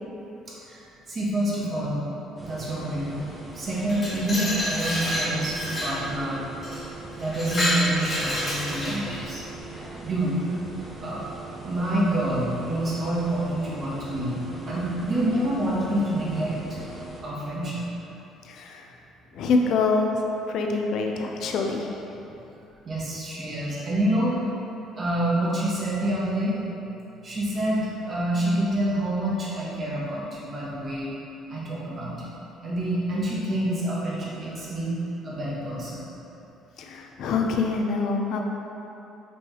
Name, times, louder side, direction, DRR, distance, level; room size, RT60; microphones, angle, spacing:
voice 1, 0.6-2.0 2.4-3.2 3.5-6.4 7.2-9.4 10.0-10.4 11.0-11.2 11.6-16.6 17.2-17.8 22.9-24.4 24.9-26.6 27.2-31.1 31.5-35.0 35.2-36.1, right 1 dB, 25° right, -6 dB, 0.9 m, -27 dB
sound 1, 2.4-17.2, right 2 dB, 5° right, 0.6 m, -41 dB
Glass, 3.7-6.0 6.6-6.8 7.2-9.2, left 1 dB, 15° left, 1.3 m, -28 dB
voice 2, 18.4-18.9 19.3-20.1 20.5-21.9 36.8-38.4, left 4 dB, 55° left, 2 dB, 0.4 m, -25 dB
5.4 x 3.0 x 2.9 m, 2.9 s
cardioid pair, 170°, 0 cm